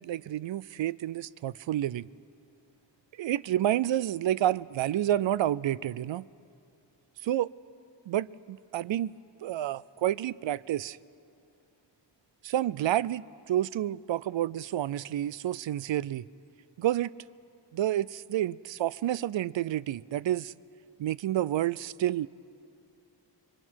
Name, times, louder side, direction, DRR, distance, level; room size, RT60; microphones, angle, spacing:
voice 1, 0.0-2.1 3.2-6.3 7.2-7.5 8.1-9.1 9.4-11.0 12.4-16.3 16.8-17.1 17.7-20.5 21.0-22.3, right 12 dB, 80° right, 0.5 m, -29 dB
27.0 x 23.5 x 6.3 m
wide cardioid pair, 165°, 45 cm